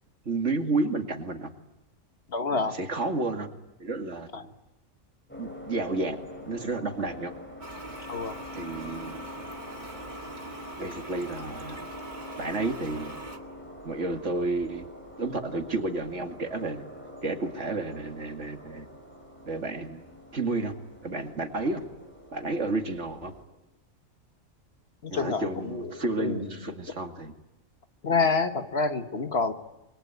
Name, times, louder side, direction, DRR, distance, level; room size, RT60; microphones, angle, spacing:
voice 1, 0.3-1.5 2.7-3.5 3.8-4.3 5.4-6.2 6.4-7.3 8.5-9.2 10.8-11.8 12.4-13.2 13.8-14.9 15.2-16.8 17.2-18.8 19.5-20.1 20.3-20.7 21.0-21.8 22.3-23.3 25.1-27.3, right 3 dB, 65° right, 5 dB, 2.6 m, -31 dB
voice 2, 2.3-2.7 4.3-4.5 8.1-8.4 25.0-26.5 28.0-29.5, left 4 dB, 55° left, 8 dB, 1.6 m, -28 dB
sound 1, 5.3-23.4, left 1 dB, 10° left, 6.3 m, -45 dB
Toilet flush, 7.6-13.4, right 2 dB, 35° right, 2.3 m, -42 dB
27.5 x 23.0 x 9.5 m, 0.98 s
omnidirectional pair, 1.3 m